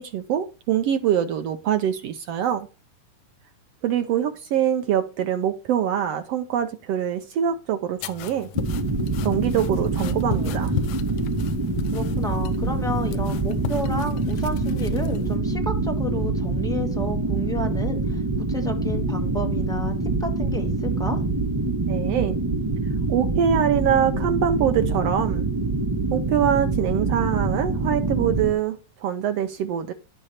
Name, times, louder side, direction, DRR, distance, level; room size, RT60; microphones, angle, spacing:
voice 1, 0.0-2.7 3.8-8.5 9.2-10.7 21.9-22.4 23.1-25.5 26.1-29.9, right 9 dB, 75° right, 1.5 m, -24 dB
sound 1, 8.0-15.4, left 12 dB, 75° left, 2.1 m, -35 dB
sound 2, 8.5-28.5, right 3 dB, 15° right, 1.0 m, -25 dB
voice 2, 11.9-18.2 18.5-19.9 20.2-21.2, left 1 dB, 5° left, 0.3 m, -32 dB
11.0 x 8.2 x 4.3 m
omnidirectional pair, 3.7 m